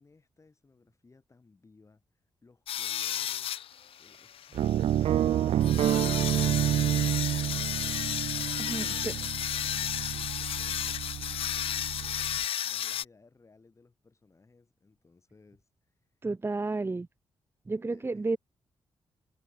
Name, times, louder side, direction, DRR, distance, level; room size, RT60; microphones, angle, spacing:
voice 1, 0.0-7.0 8.3-15.9 17.9-18.3, left 3 dB, 30° left, 6.1 m, -60 dB
sound 1, 2.7-13.0, left 10 dB, 75° left, 0.6 m, -34 dB
sound 2, 4.5-12.4, right 11 dB, 85° right, 0.7 m, -29 dB
voice 2, 8.6-9.1 16.2-17.1 17.7-18.4, right 3 dB, 25° right, 1.0 m, -31 dB
cardioid pair, 80°, 10 cm